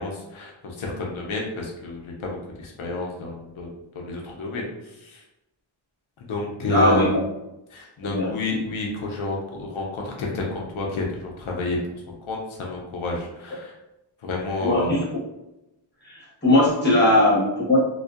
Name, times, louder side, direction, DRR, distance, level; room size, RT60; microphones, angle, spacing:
voice 1, 0.0-5.2 6.2-7.2 7.7-11.8 12.1-13.8 14.2-15.0, left 2 dB, 85° left, -1 dB, 0.6 m, -30 dB
voice 2, 6.7-7.1 8.0-8.3 14.6-15.0 16.0-17.8, left 1 dB, 20° left, -7 dB, 0.9 m, -19 dB
2.5 x 2.1 x 2.3 m, 0.92 s
wide cardioid pair, 115°, 48 cm